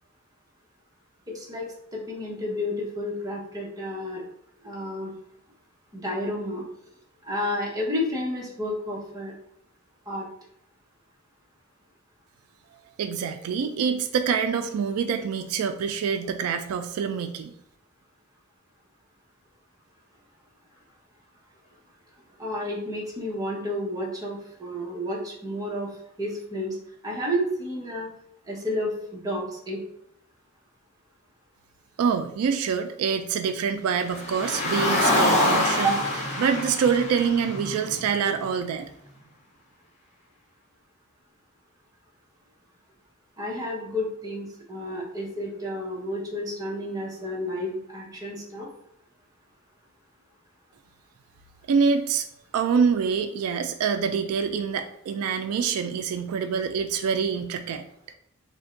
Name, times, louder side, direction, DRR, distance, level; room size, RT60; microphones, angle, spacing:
voice 1, 1.3-4.2 4.6-5.1 5.9-6.6 7.2-9.3 10.1-10.3 22.4-25.9 26.2-26.8 27.0-28.1 28.5-29.8 35.8-36.0 43.4-48.7, equal, 15° right, -4 dB, 0.9 m, -31 dB
voice 2, 13.0-17.5 32.0-36.0 36.4-38.9 51.7-52.3 52.5-57.8, right 6 dB, 85° right, 7 dB, 0.3 m, -25 dB
Car, 34.1-38.4, left 1 dB, 30° left, 0.9 m, -25 dB
3.3 x 2.2 x 3.7 m, 0.73 s
head